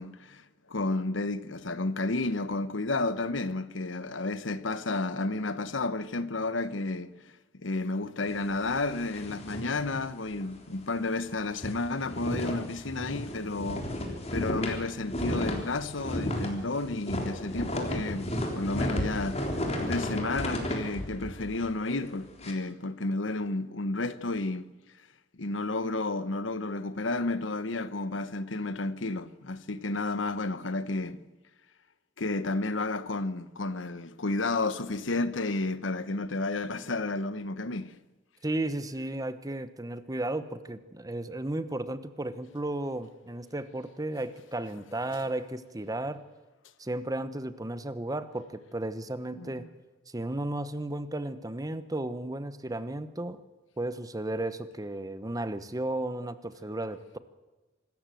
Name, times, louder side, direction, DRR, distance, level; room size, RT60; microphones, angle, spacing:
voice 1, 0.0-7.1 7.6-13.8 14.3-19.4 19.9-24.7 25.4-31.2 32.2-38.0 49.4-49.7, left 2 dB, 85° left, 1.1 m, -31 dB
sound 1, 8.3-10.6 10.9-11.0 11.3-22.5, left 1 dB, 35° left, 3.6 m, -34 dB
voice 2, 38.4-46.2 46.8-49.6 50.1-53.4 53.8-57.2, right 1 dB, 20° right, 1.0 m, -34 dB
25.0 x 13.5 x 7.8 m
head